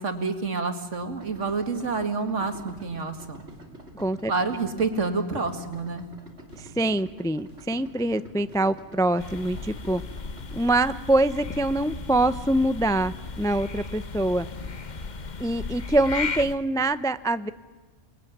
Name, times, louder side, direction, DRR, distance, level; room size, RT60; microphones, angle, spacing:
voice 1, 0.0-3.4 4.2-6.0, right 4 dB, 70° right, 7 dB, 2.5 m, -28 dB
sound 1, 1.0-16.9, equal, 75° left, 6.4 m, -50 dB
Idling, 1.2-10.7, right 1 dB, 55° right, 3.0 m, -49 dB
voice 2, 3.9-4.3 6.6-10.0 10.5-14.5 15.4-17.5, right 1 dB, 5° left, 13 dB, 0.4 m, -24 dB
sound 2, 9.2-16.6, left 4 dB, 40° left, 1.1 m, -36 dB
29.0 x 20.5 x 9.5 m, 1.4 s
omnidirectional pair, 1.3 m